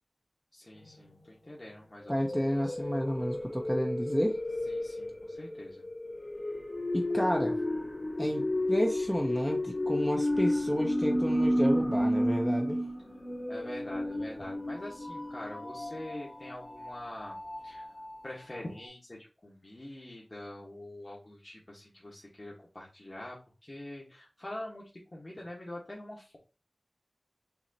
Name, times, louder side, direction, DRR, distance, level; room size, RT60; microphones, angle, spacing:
voice 1, 0.5-2.3 2.5-2.9 4.7-5.8 13.5-17.4 17.6-17.9 18.2-26.4, left 1 dB, 40° left, -4 dB, 1.4 m, -45 dB
sound 1, 0.8-1.0 2.1-18.1 18.5-18.6 18.8-18.9, left 1 dB, 65° left, 1.9 m, -32 dB
voice 2, 2.1-4.4 6.9-7.6 8.2-12.8, equal, 5° left, 1 dB, 0.8 m, -31 dB
5.8 x 2.8 x 2.8 m, 0.32 s
wide cardioid pair, 40°, 0 cm